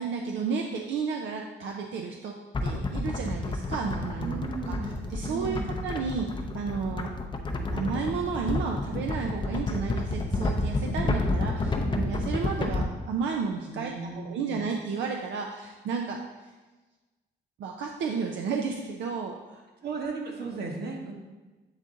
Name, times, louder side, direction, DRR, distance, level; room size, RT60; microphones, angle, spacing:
voice 1, 0.0-2.3 2.6-7.1 7.7-16.2 16.4-16.5 17.6-19.6 20.5-20.6, right 5 dB, 85° right, 2 dB, 0.5 m, -32 dB
sound 1, 2.5-12.8, left 2 dB, 25° left, 0.5 m, -30 dB
voice 2, 4.2-4.9 5.2-5.8 13.7-14.6 19.8-21.1, right 4 dB, 60° right, 1 dB, 1.2 m, -35 dB
8.0 x 3.7 x 3.8 m, 1.2 s
cardioid pair, 145°, 19 cm